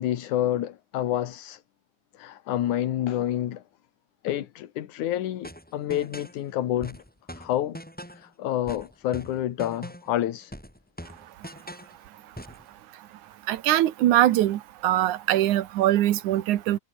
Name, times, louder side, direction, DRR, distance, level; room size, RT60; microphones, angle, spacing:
voice 1, 0.0-1.6 2.2-3.6 4.2-7.0 7.3-7.8 8.1-10.5, left 12 dB, 85° left, 2.8 m, -28 dB
sound 1, 5.4-6.4 6.8-8.3 8.7-10.2 10.5-12.0 12.4-12.7, equal, 5° left, 6.4 m, -42 dB
voice 2, 13.5-16.8, right 13 dB, 90° right, 2.6 m, -22 dB
omnidirectional pair, 3.4 m